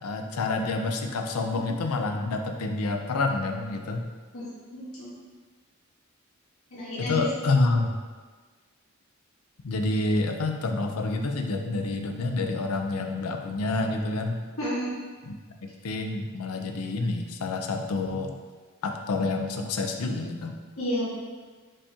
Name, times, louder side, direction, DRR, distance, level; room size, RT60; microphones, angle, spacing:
voice 1, 0.0-4.0 7.0-8.0 9.6-14.4 15.2-15.4 15.6-18.3 18.8-20.6, left 3 dB, 90° left, 4 dB, 0.5 m, -28 dB
voice 2, 4.7-5.1 6.7-7.3 14.6-14.9 20.8-21.0, equal, 75° left, -8 dB, 1.3 m, -31 dB
5.3 x 2.7 x 3.5 m, 1.4 s
head